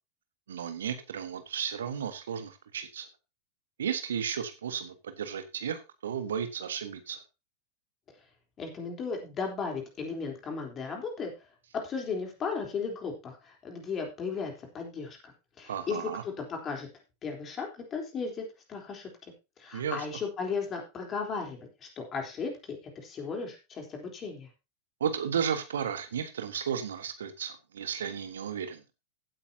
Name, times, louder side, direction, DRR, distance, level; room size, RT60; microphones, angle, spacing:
voice 1, 0.5-3.1 3.8-7.2 15.7-16.2 19.7-20.0 25.0-28.8, right 8 dB, 65° right, 9 dB, 1.4 m, -34 dB
voice 2, 8.6-11.3 11.8-15.3 15.6-16.0 16.4-16.9 17.2-19.1 19.6-21.6 22.0-22.8 23.0-24.5, left 5 dB, 25° left, 2 dB, 3.7 m, -35 dB
16.0 x 8.8 x 2.9 m, 0.27 s
figure-of-eight pair, 90°, 0 cm